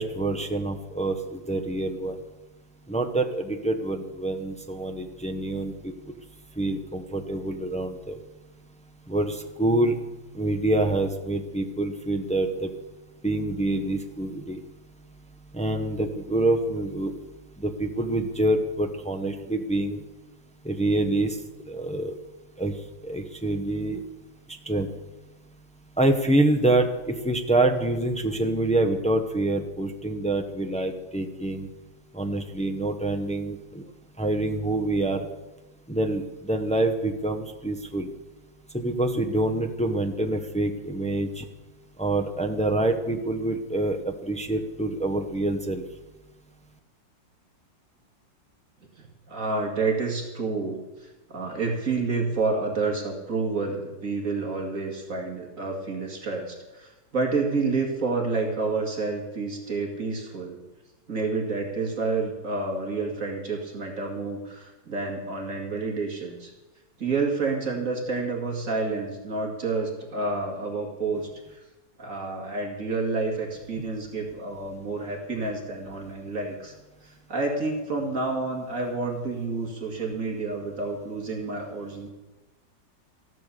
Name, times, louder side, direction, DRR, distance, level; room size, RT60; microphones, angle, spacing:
voice 1, 0.0-2.2 2.9-5.9 6.6-8.2 9.1-10.0 10.3-12.7 13.2-14.6 15.5-17.1 17.6-20.0 20.6-21.4 21.7-22.1 22.6-22.8 23.0-24.0 24.5-24.9 26.0-31.7 32.1-33.8 34.2-35.3 35.9-38.1 38.7-41.5 42.0-45.8, right 2 dB, 10° left, 4 dB, 0.5 m, -26 dB
voice 2, 49.0-60.6 61.1-66.5 67.0-71.6 72.0-76.7 77.0-82.1, right 3 dB, 45° right, 0 dB, 2.4 m, -29 dB
14.0 x 11.0 x 6.7 m, 1.1 s
omnidirectional pair, 1.9 m